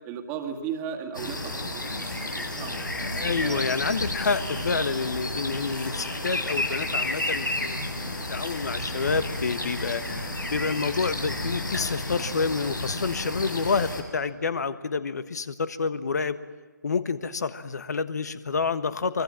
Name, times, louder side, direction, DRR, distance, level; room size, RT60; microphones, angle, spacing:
voice 1, 0.0-2.8 3.4-3.6 4.9-5.1, right 7 dB, 20° right, 2 dB, 2.2 m, -36 dB
sound 1, 1.1-14.0, left 1 dB, 90° left, 6.2 m, -31 dB
voice 2, 3.0-7.8 8.3-10.0 10.5-16.4 16.8-19.2, left 5 dB, 60° left, 12 dB, 1.4 m, -28 dB
24.5 x 24.0 x 7.6 m, 1.4 s
figure-of-eight pair, 140°, 10 cm